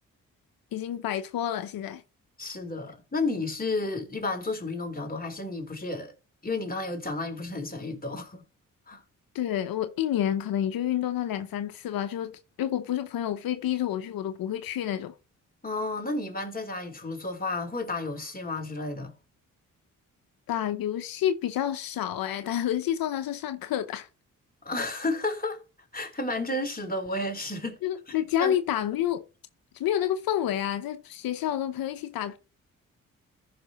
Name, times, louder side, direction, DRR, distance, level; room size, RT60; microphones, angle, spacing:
voice 1, 0.7-2.0 9.3-15.1 20.5-24.1 27.8-29.2 29.7-32.4, left 11 dB, 85° left, 0.8 m, -29 dB
voice 2, 2.4-6.1 6.4-8.4 8.9-9.0 15.6-19.1 24.6-25.6 25.9-27.8 28.1-28.5, left 2 dB, 25° left, 3.6 m, -32 dB
14.5 x 5.9 x 3.0 m
supercardioid pair, 50°, 34 cm